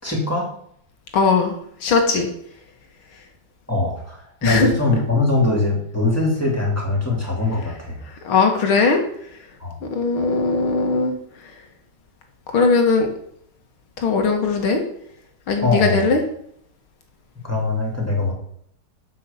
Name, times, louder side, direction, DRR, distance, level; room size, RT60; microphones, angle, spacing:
voice 1, 0.0-0.5 3.7-8.0 9.6-9.8 15.6-16.1 17.4-18.3, left 2 dB, 5° left, -1 dB, 2.8 m, -22 dB
voice 2, 1.1-2.3 4.4-4.7 8.2-9.0 9.9-11.1 12.5-13.1 14.0-14.8 15.5-16.2, left 4 dB, 90° left, 4 dB, 2.6 m, -19 dB
8.5 x 5.8 x 7.1 m, 0.69 s
omnidirectional pair, 2.3 m